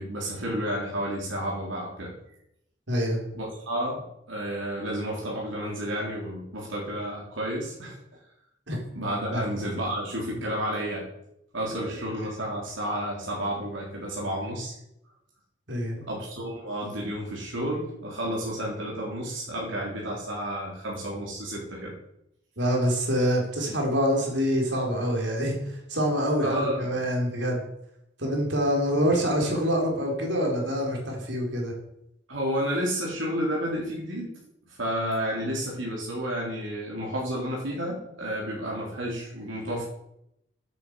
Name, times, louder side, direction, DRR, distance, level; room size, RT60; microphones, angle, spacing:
voice 1, 0.0-2.1 3.3-8.0 8.9-11.1 11.5-14.7 16.1-21.9 26.4-26.9 32.3-34.3 34.7-39.8, equal, 90° right, -3 dB, 3.8 m, -31 dB
voice 2, 2.9-3.2 8.7-8.8 9.3-9.4 15.7-16.0 22.6-27.6 28.2-31.7, equal, 75° right, 0 dB, 4.4 m, -26 dB
10.0 x 9.3 x 8.2 m, 0.81 s
head